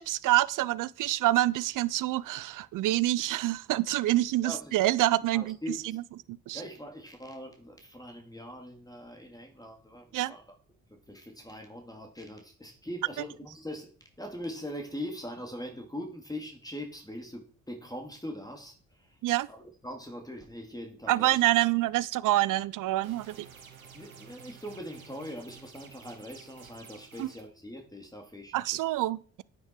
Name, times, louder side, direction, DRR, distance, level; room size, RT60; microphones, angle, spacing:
voice 1, 0.0-5.6 5.9-6.0 6.3-6.6 10.1-10.3 19.2-19.5 21.1-23.5 27.2-27.3 28.5-29.4, right 16 dB, 50° right, 0.7 m, -27 dB
voice 2, 4.4-4.8 5.3-5.9 6.5-10.4 10.9-13.9 14.2-19.2 19.5-21.4 23.9-28.8, equal, 10° left, 2.9 m, -42 dB
sound 1, 23.0-27.4, right 7 dB, 85° right, 1.2 m, -51 dB
9.4 x 9.1 x 4.7 m
figure-of-eight pair, 40°, 40 cm